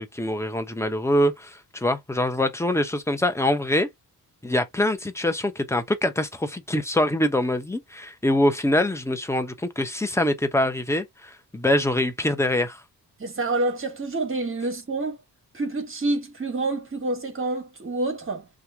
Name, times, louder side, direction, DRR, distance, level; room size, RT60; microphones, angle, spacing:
voice 1, 0.0-3.9 4.4-12.8, left 1 dB, 5° left, 0.8 m, -24 dB
voice 2, 13.2-15.2 15.5-18.5, right 2 dB, 30° right, 1.4 m, -27 dB
2.8 x 2.5 x 3.5 m
supercardioid pair, 50°, 40 cm